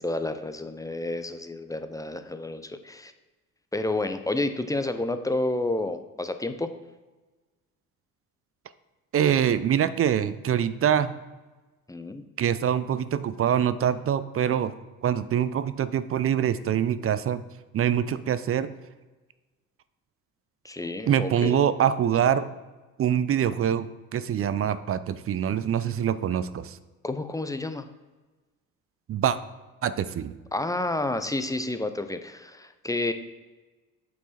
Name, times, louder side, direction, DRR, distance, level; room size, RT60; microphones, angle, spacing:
voice 1, 0.0-3.1 3.7-6.7 11.9-12.2 20.6-21.6 27.0-27.9 30.5-33.1, left 2 dB, 10° left, 9 dB, 0.6 m, -30 dB
voice 2, 9.1-11.1 12.4-14.7 15.0-17.4 17.7-18.7 21.1-22.5 23.0-23.9 24.1-26.8 29.1-29.4 29.8-30.3, right 9 dB, 30° right, 13 dB, 0.6 m, -24 dB
8.3 x 4.5 x 4.3 m, 1.2 s
figure-of-eight pair, 55°, 42 cm